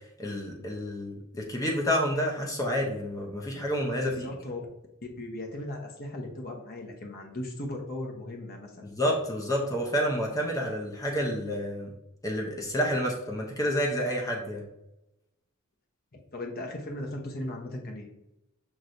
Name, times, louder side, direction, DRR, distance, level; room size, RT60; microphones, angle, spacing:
voice 1, 0.2-4.3 8.8-11.9 12.2-14.6, equal, 15° left, -1 dB, 0.7 m, -29 dB
voice 2, 4.2-4.7 5.2-8.7 16.3-18.1, left 1 dB, 45° left, 0 dB, 0.9 m, -37 dB
6.1 x 3.1 x 2.6 m, 0.88 s
head